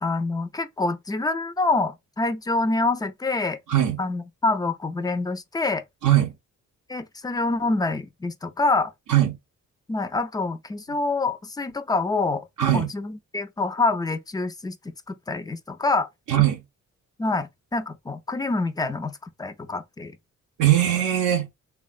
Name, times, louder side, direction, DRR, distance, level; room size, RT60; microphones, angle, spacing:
voice 1, 0.0-3.6 4.0-5.8 6.9-8.9 9.9-12.4 12.7-14.8 15.1-16.1 17.2-20.2, left 3 dB, 15° left, 0.3 m, -26 dB
voice 2, 3.7-4.0 6.0-6.3 9.1-9.4 12.6-12.9 16.3-16.6 20.6-21.5, right 12 dB, 80° right, 0.6 m, -20 dB
3.3 x 2.1 x 2.4 m
cardioid pair, 105°, 31 cm